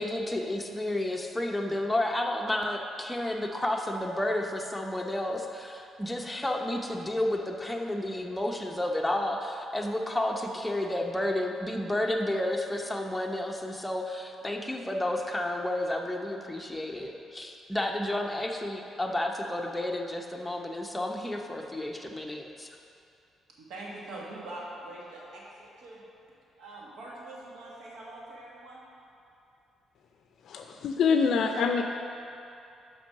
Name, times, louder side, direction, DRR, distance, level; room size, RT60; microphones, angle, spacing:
voice 1, 0.0-22.7, left 1 dB, 10° left, 1 dB, 0.7 m, -31 dB
voice 2, 23.5-26.0 26.6-28.9, right 2 dB, 80° right, -4 dB, 1.4 m, -43 dB
voice 3, 30.5-31.8, left 5 dB, 70° left, 4 dB, 0.4 m, -25 dB
5.9 x 5.4 x 5.7 m, 2.7 s
cardioid pair, 90°, 0 cm